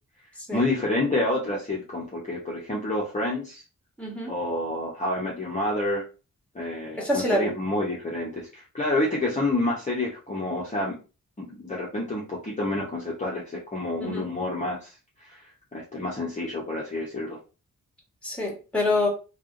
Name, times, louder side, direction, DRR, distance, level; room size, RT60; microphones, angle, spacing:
voice 1, 0.5-3.6 4.3-6.0 6.5-11.0 11.4-17.4, left 2 dB, 25° left, -5 dB, 1.0 m, -29 dB
voice 2, 4.0-4.3 7.0-7.5 14.0-14.3 18.2-19.1, left 2 dB, 5° left, -1 dB, 1.6 m, -26 dB
3.4 x 2.5 x 3.8 m, 0.32 s
wide cardioid pair, 105°, 33 cm